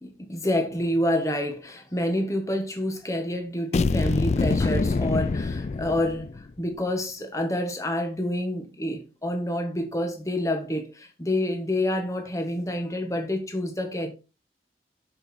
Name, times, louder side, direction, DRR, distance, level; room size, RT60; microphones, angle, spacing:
voice 1, 0.0-14.1, left 1 dB, 20° left, 1.4 m, -28 dB
sound 1, 3.7-6.5, left 3 dB, 40° left, 0.3 m, -25 dB
6.6 x 6.2 x 4.4 m
head